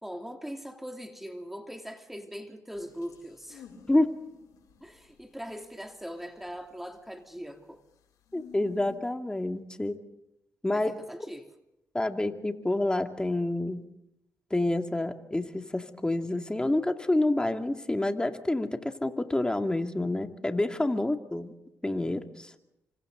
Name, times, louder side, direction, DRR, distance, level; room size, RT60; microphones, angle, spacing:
voice 1, 0.0-3.7 4.8-7.8 10.7-11.5, equal, 5° right, 4 dB, 2.9 m, -41 dB
sound 1, 2.7-9.0, left 8 dB, 85° left, 7.0 m, -55 dB
voice 2, 8.3-10.0 10.6-10.9 11.9-13.8 14.5-21.5 21.8-22.5, left 2 dB, 15° left, 5 dB, 2.5 m, -28 dB
26.0 x 26.0 x 4.0 m, 0.88 s
cardioid pair, 70°, 6 cm